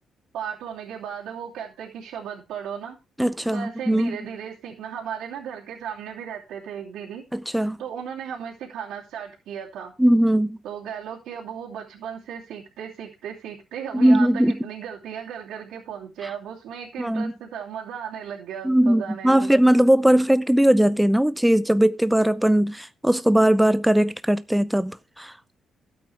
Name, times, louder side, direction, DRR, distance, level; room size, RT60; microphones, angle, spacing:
voice 1, 0.3-3.0 3.5-7.2 7.8-9.9 10.6-19.5, right 8 dB, 85° right, 2.9 m, -35 dB
voice 2, 3.2-4.2 7.3-7.8 10.0-10.6 13.9-14.5 17.0-17.3 18.6-25.3, right 1 dB, 5° right, 0.5 m, -19 dB
13.0 x 8.6 x 3.4 m
cardioid pair, 90°, 0 cm